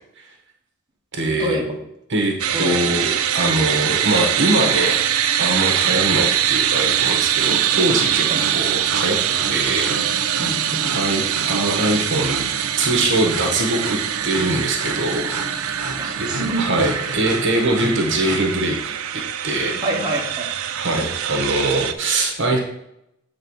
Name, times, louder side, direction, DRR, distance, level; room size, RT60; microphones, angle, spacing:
voice 1, 1.1-1.8 2.1-5.0 5.4-8.3 8.5-9.2 9.5-9.9 10.9-12.4 12.8-14.0 14.2-15.3 16.2-16.3 16.6-19.8 20.7-22.6, right 1 dB, 55° right, 2 dB, 1.3 m, -22 dB
sound 1, 2.4-21.9, right 10 dB, 70° right, 0.5 m, -23 dB
voice 2, 2.5-2.9 5.9-6.3 8.3-8.5 10.4-11.0 16.0-17.2 19.8-20.4, right 1 dB, 20° right, -3 dB, 1.5 m, -27 dB
sound 2, 7.4-18.4, right 3 dB, 85° right, 1.2 m, -32 dB
7.9 x 3.8 x 5.5 m, 0.80 s
head